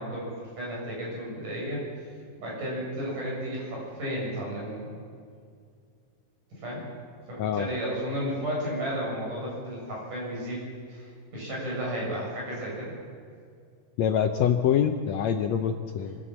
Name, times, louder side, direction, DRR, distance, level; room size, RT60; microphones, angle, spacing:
voice 1, 0.0-1.8 2.4-4.9 6.6-6.8 7.3-10.6 10.9-12.9 16.0-16.1, equal, 65° right, -4 dB, 9.3 m, -33 dB
voice 2, 14.0-16.2, left 8 dB, 75° left, 6 dB, 1.6 m, -25 dB
24.0 x 15.5 x 7.5 m, 2.2 s
omnidirectional pair, 4.0 m